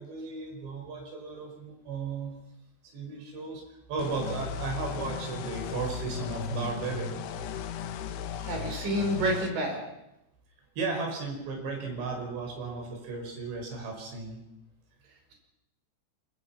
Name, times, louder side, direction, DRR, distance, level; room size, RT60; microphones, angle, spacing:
voice 1, 0.0-2.3 2.8-3.6 3.9-7.2 10.8-14.4, right 4 dB, 80° right, 2 dB, 7.3 m, -35 dB
sound 1, 4.0-9.5, left 6 dB, 85° left, 3.4 m, -36 dB
voice 2, 8.4-9.8, right 1 dB, 50° right, 2 dB, 6.3 m, -29 dB
26.5 x 23.0 x 5.9 m, 0.85 s
omnidirectional pair, 4.9 m